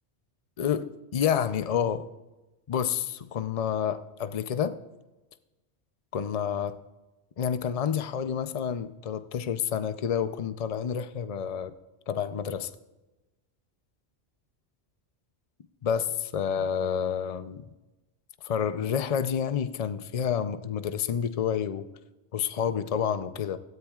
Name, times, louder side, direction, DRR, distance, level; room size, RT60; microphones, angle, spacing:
voice 1, 0.6-2.1 2.7-4.8 6.1-6.8 7.4-11.7 12.1-12.7 15.8-17.6 18.4-21.9 22.3-23.6, left 8 dB, 40° left, 11 dB, 0.6 m, -29 dB
17.0 x 13.5 x 2.4 m, 1.1 s
omnidirectional pair, 1.1 m